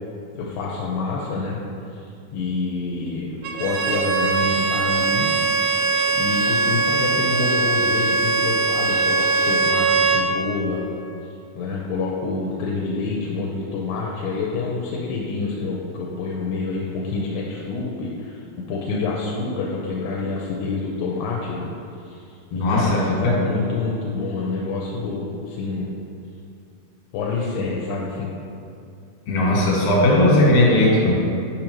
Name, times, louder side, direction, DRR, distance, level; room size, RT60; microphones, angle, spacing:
voice 1, 0.3-1.6 1.9-5.3 6.1-10.8 11.2-21.7 22.0-25.9 27.1-28.3, left 3 dB, 80° left, -3 dB, 2.3 m, -27 dB
Bowed string instrument, 3.4-10.3, right 3 dB, 80° right, 2.0 m, -21 dB
voice 2, 22.5-23.3 29.3-31.1, left 1 dB, 65° left, -4 dB, 2.5 m, -17 dB
7.1 x 5.1 x 3.0 m, 2.5 s
omnidirectional pair, 4.2 m